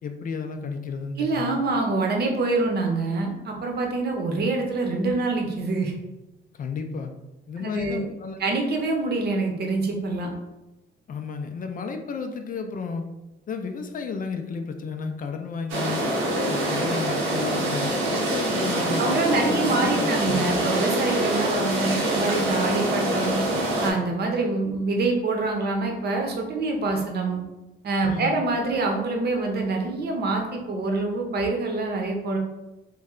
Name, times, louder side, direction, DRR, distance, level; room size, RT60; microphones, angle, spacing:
voice 1, 0.0-1.6 6.5-7.1 7.5-8.4 11.1-13.1 13.5-16.1 16.5-20.6 28.1-28.4, left 5 dB, 45° left, 6 dB, 0.4 m, -32 dB
voice 2, 1.2-5.9 7.6-8.0 8.4-10.3 19.0-23.4 23.8-27.4 27.8-32.4, right 3 dB, 55° right, 2 dB, 0.8 m, -25 dB
sound 1, 15.7-23.9, right 1 dB, 85° right, 0.8 m, -25 dB
3.1 x 2.1 x 3.6 m, 1.0 s
cardioid pair, 90°, 20 cm